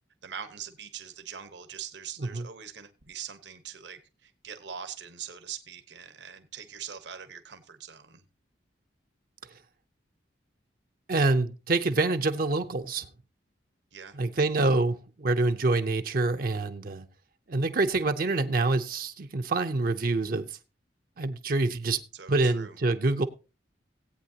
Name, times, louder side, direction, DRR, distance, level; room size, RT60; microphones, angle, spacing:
voice 1, 0.2-8.2 13.9-14.2 22.1-22.8, right 8 dB, 70° right, 1.1 m, -42 dB
voice 2, 11.1-13.1 14.1-17.1 17.5-20.5 21.2-22.0 22.3-23.3, right 3 dB, 50° right, 0.6 m, -26 dB
17.5 x 8.6 x 2.8 m
head